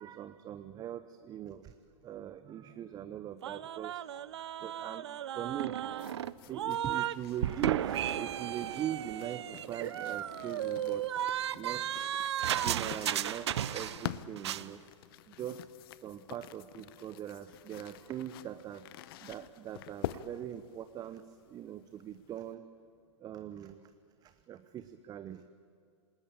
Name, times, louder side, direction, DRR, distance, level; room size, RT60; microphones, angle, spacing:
voice 1, 0.0-1.7 2.0-4.2 4.6-5.1 5.3-5.8 6.5-11.2 11.5-12.1 12.5-14.8 15.3-15.7 16.0-18.8 19.2-21.2 21.5-22.6 23.2-23.8 24.2-25.5, right 11 dB, 25° right, 11 dB, 0.9 m, -41 dB
sound 1, 3.4-7.2 7.4-14.1 14.4-14.7, right 11 dB, 60° right, 0.8 m, -34 dB
sound 2, 6.0-22.5, left 13 dB, 45° left, 0.9 m, -47 dB
27.5 x 19.5 x 8.8 m, 2.2 s
figure-of-eight pair, 105°, 16 cm